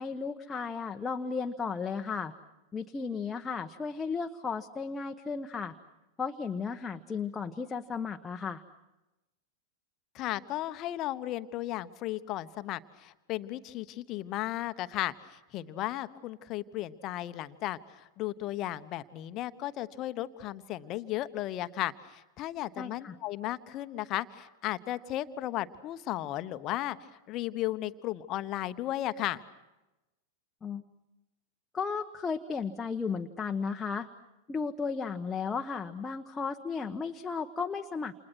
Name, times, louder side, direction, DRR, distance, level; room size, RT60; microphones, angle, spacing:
voice 1, 0.0-2.3 2.7-5.7 6.2-8.6 22.8-23.1 30.6-30.8 31.7-34.1 34.5-38.2, left 5 dB, 15° left, 4 dB, 1.1 m, -34 dB
voice 2, 10.1-27.0 27.3-29.4, left 14 dB, 35° left, 12 dB, 1.0 m, -35 dB
29.5 x 28.5 x 6.2 m, 1.0 s
figure-of-eight pair, 90°, 0 cm